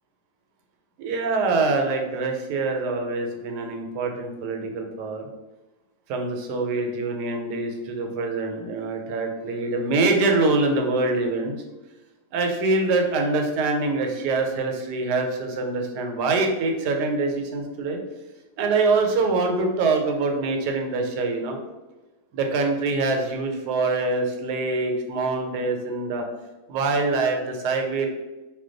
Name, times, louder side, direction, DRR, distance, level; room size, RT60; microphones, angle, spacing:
voice 1, 1.0-5.3 6.1-11.5 12.3-18.0 18.6-21.6 22.3-26.2 26.7-28.1, right 3 dB, 90° right, 3 dB, 1.2 m, -24 dB
2.5 x 2.2 x 3.7 m, 1.1 s
omnidirectional pair, 1.7 m